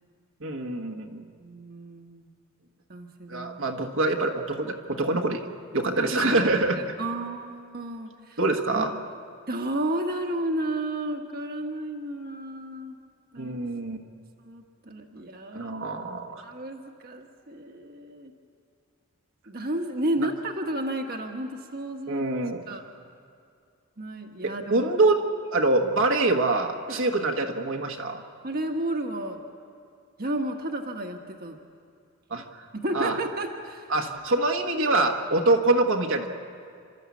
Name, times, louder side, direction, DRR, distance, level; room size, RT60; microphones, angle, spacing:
voice 1, 0.4-1.2 3.3-5.5 5.7-6.8 8.4-8.9 13.4-14.0 15.5-16.5 22.1-22.8 24.4-25.2 25.5-28.2 32.3-32.6 32.9-33.2 33.9-36.3, right 2 dB, 60° right, 2 dB, 1.4 m, -25 dB
voice 2, 1.4-2.3 2.9-3.6 6.0-6.3 6.8-8.4 8.7-8.9 9.5-13.0 13.3-13.6 14.4-15.7 16.4-18.3 19.5-22.3 22.7-22.8 24.0-24.9 26.9-27.0 28.4-29.4 30.2-31.6 32.7-33.9, right 1 dB, 45° right, 3 dB, 1.4 m, -32 dB
29.5 x 13.0 x 8.5 m, 2.4 s
head